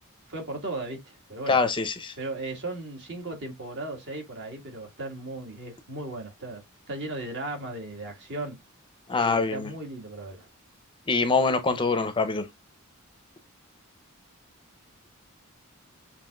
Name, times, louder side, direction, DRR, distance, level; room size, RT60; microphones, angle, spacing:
voice 1, 0.3-1.6 2.2-8.6 9.2-10.5, right 2 dB, 55° right, 1.7 m, -36 dB
voice 2, 1.5-2.1 9.1-9.7 11.1-12.5, left 4 dB, 20° left, 0.6 m, -24 dB
7.1 x 2.9 x 2.3 m
head